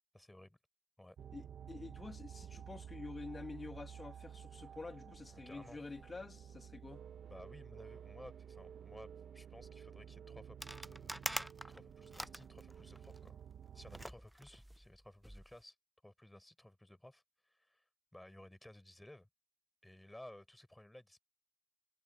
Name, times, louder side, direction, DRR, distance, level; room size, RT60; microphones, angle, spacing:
voice 1, 0.1-0.6 1.0-1.2 5.3-5.8 7.3-9.1 9.3-13.4 13.7-15.7 16.0-17.8 18.1-19.3 19.8-21.2, left 1 dB, 15° left, 4.7 m, -57 dB
sound 1, 1.2-14.1, right 8 dB, 90° right, 0.9 m, -52 dB
voice 2, 1.3-7.1, left 3 dB, 50° left, 1.8 m, -48 dB
sound 2, 10.6-13.2 13.9-15.5, right 1 dB, 10° right, 0.5 m, -45 dB
supercardioid pair, 40°, 0 cm